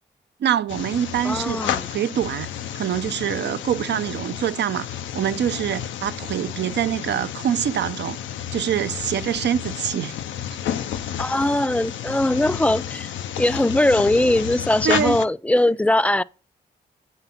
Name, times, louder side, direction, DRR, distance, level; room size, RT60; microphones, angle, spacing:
voice 1, 0.4-1.6 1.9-2.5 2.7-4.9 5.1-8.2 8.5-10.2 14.8-15.2, right 9 dB, 70° right, 0.5 m, -24 dB
sound 1, 0.7-15.3, left 10 dB, 85° left, 0.4 m, -31 dB
voice 2, 1.2-1.9 11.2-13.1 13.4-16.2, left 1 dB, 5° left, 0.4 m, -20 dB
8.2 x 4.0 x 5.7 m
supercardioid pair, 45°, 19 cm